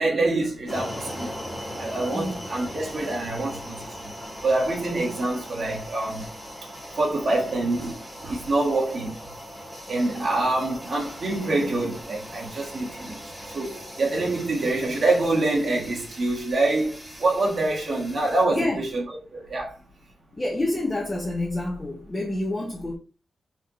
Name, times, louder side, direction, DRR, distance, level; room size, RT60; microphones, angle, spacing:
voice 1, 0.0-1.4 1.7-4.2 4.4-6.3 7.0-9.2 9.9-19.0 19.3-19.7, right 2 dB, 60° right, 1.7 m, -26 dB
sound 1, 0.7-18.4, equal, ahead, 1.5 m, -39 dB
voice 2, 18.5-18.9 20.3-23.0, left 1 dB, 20° left, 1.1 m, -28 dB
4.3 x 3.5 x 3.0 m
wide cardioid pair, 115°, 0 cm